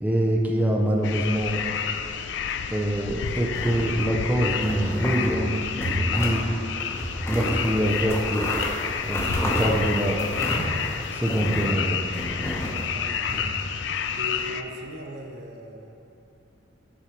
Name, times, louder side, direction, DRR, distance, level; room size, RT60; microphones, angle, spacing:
voice 1, 0.0-1.6 2.7-5.5 5.9-6.5 7.3-8.5 9.0-10.2 11.1-12.0, right 1 dB, 10° right, -1 dB, 0.5 m, -24 dB
sound 1, 1.0-14.6, left 7 dB, 70° left, 0.3 m, -30 dB
sound 2, 3.5-4.2 4.6-5.4 5.7-6.4 6.8-11.7 12.1-13.4, equal, 15° left, 0.9 m, -30 dB
voice 2, 7.3-7.9 12.9-13.3 14.1-16.0, equal, 60° right, 2 dB, 0.7 m, -40 dB
7.1 x 5.3 x 4.5 m, 2.8 s
head